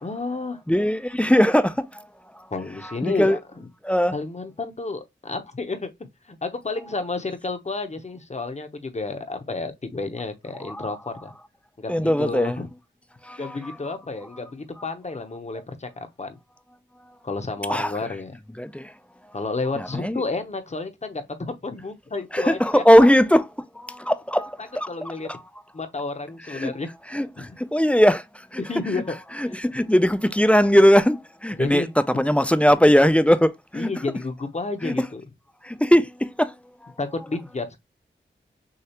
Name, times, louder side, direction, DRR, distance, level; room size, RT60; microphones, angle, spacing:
voice 1, 0.0-0.6 2.5-3.7 4.1-5.9 6.3-11.3 11.8-12.7 13.4-16.4 17.2-18.3 19.3-22.8 24.9-25.3 25.7-26.9 27.5-27.6 28.6-29.2 29.5-29.6 31.6-31.9 33.7-35.2 37.0-37.8, left 3 dB, 35° left, 0.7 m, -31 dB
voice 2, 0.7-2.0 3.0-3.4 3.8-4.1 10.6-10.9 11.9-12.6 13.2-13.8 17.7-17.9 18.6-18.9 19.8-20.2 22.3-23.4 23.8-25.4 26.5-26.7 27.1-28.6 28.9-29.0 29.4-31.9 32.2-33.9 34.8-35.1 35.6-36.5 36.8-36.9, equal, 5° left, 0.3 m, -20 dB
6.5 x 2.4 x 2.8 m
wide cardioid pair, 80°, 20 cm